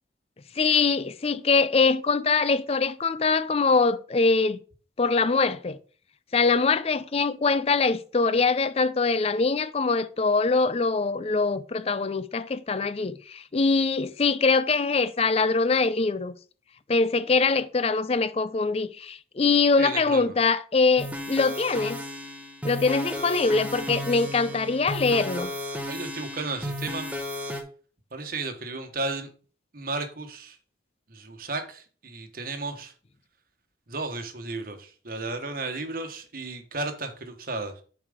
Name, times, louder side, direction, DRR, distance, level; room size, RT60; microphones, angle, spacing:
voice 1, 0.6-4.6 5.0-5.8 6.3-16.3 16.9-22.0 22.6-25.5, left 4 dB, 35° left, 0.4 m, -23 dB
voice 2, 19.8-20.3 25.9-27.1 28.1-29.3 29.7-30.6 31.1-32.9 33.9-37.7, right 3 dB, 50° right, 1.3 m, -34 dB
sound 1, 21.0-27.6, left 1 dB, 10° right, 1.1 m, -34 dB
7.4 x 4.8 x 5.0 m
head